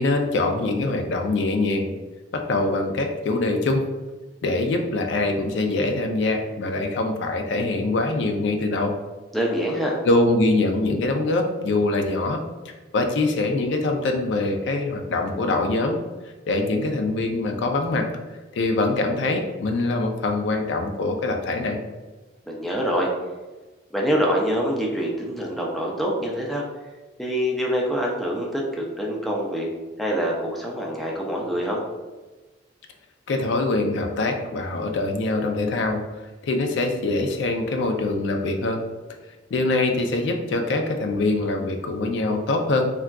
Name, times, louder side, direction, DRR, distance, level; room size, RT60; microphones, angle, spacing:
voice 1, 0.0-1.9 2.3-3.9 4.4-8.9 10.0-12.4 12.9-16.0 16.5-18.1 18.5-21.8 33.3-36.0 36.4-38.8 39.5-42.9, left 2 dB, 70° left, 4 dB, 0.4 m, -23 dB
voice 2, 9.3-10.0 22.5-23.1 23.9-26.6 27.2-29.7 30.0-31.8, equal, ahead, -3 dB, 0.4 m, -25 dB
3.5 x 2.3 x 2.2 m, 1.2 s
head